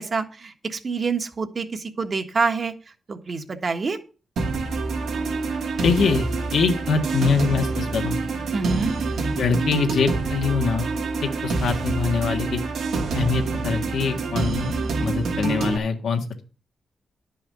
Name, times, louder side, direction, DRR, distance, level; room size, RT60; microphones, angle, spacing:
voice 1, 0.0-2.7 3.1-4.0 8.5-8.9, right 4 dB, 45° right, 7 dB, 1.3 m, -26 dB
sound 1, 4.4-15.8, right 3 dB, 90° right, 2.1 m, -26 dB
voice 2, 5.8-6.3 6.5-8.2 9.4-10.9 11.2-12.6 13.1-16.4, left 5 dB, 85° left, 4 dB, 1.7 m, -24 dB
10.5 x 5.7 x 6.7 m, 0.37 s
cardioid pair, 100°, 0 cm